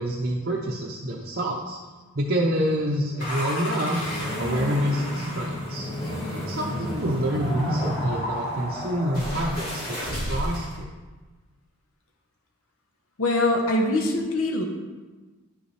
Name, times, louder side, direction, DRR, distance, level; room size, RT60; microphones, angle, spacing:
voice 1, 0.0-1.8 2.1-4.0 4.4-5.9 6.4-10.9, equal, 45° right, -3 dB, 0.7 m, -27 dB
sound 1, 3.2-10.8, equal, 40° left, 2.4 m, -31 dB
voice 2, 13.2-14.6, left 2 dB, 70° left, 2 dB, 1.0 m, -23 dB
10.0 x 5.4 x 3.3 m, 1.3 s
head